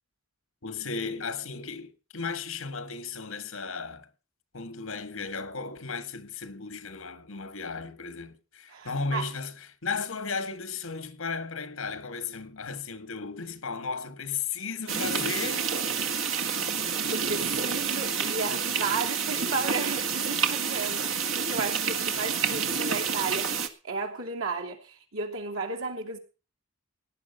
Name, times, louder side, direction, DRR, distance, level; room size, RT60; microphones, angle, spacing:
voice 1, 0.6-4.1 4.5-9.5 9.8-15.7, left 5 dB, 75° left, 1.7 m, -35 dB
voice 2, 8.7-9.3 17.1-26.2, right 4 dB, 85° right, 3.0 m, -34 dB
sound 1, 14.9-23.7, right 6 dB, 70° right, 1.7 m, -29 dB
17.5 x 10.0 x 5.6 m
head